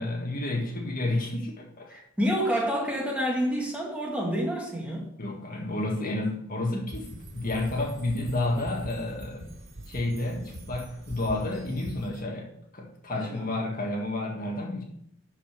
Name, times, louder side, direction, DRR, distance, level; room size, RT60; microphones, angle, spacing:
voice 1, 0.0-2.0 5.2-9.4 9.9-14.8, left 2 dB, 45° left, 1.7 m, -30 dB
voice 2, 1.9-5.1 13.1-13.5, equal, 5° right, 2.2 m, -28 dB
sound 1, 6.9-12.2, right 1 dB, 70° right, 3.3 m, -42 dB
12.0 x 5.4 x 5.2 m
head